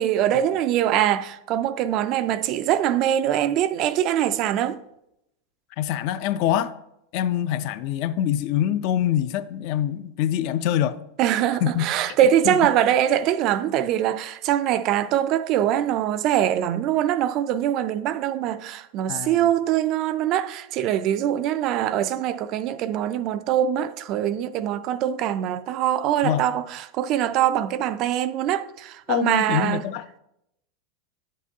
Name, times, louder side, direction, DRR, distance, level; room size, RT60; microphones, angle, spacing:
voice 1, 0.0-4.8 11.2-29.8, right 11 dB, 35° right, 0.3 m, -23 dB
voice 2, 5.8-6.7 7.1-11.0 11.6-11.8 12.5-12.6 19.1-19.5 26.2-26.4 29.1-30.0, left 11 dB, 45° left, 0.4 m, -24 dB
10.5 x 7.3 x 2.7 m
supercardioid pair, 170°, 0 cm